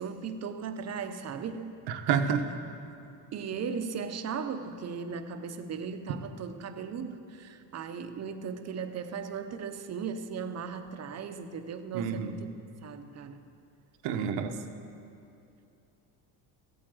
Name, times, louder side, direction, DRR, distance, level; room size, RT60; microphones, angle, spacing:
voice 1, 0.0-1.8 3.3-12.5 12.8-13.4, right 6 dB, 40° right, 8 dB, 0.9 m, -37 dB
voice 2, 1.9-2.4 11.9-12.3 14.0-14.6, right 7 dB, 80° right, 6 dB, 1.2 m, -28 dB
15.0 x 8.9 x 7.8 m, 2.7 s
cardioid pair, 135°, 42 cm